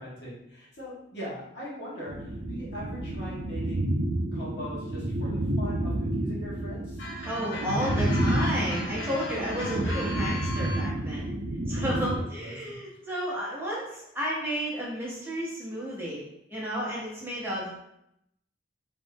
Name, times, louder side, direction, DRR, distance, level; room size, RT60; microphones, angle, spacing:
voice 1, 0.0-3.9 4.3-7.1 9.5-9.9 11.7-12.8, equal, 60° left, -6 dB, 1.3 m, -41 dB
sound 1, 2.1-12.2, right 1 dB, 70° right, 0.6 m, -30 dB
sound 2, 7.0-10.9, left 1 dB, 80° left, 0.9 m, -37 dB
voice 2, 7.2-11.3 11.7-16.2 16.5-17.7, equal, 10° right, -6 dB, 0.8 m, -32 dB
3.1 x 2.5 x 3.4 m, 0.79 s
head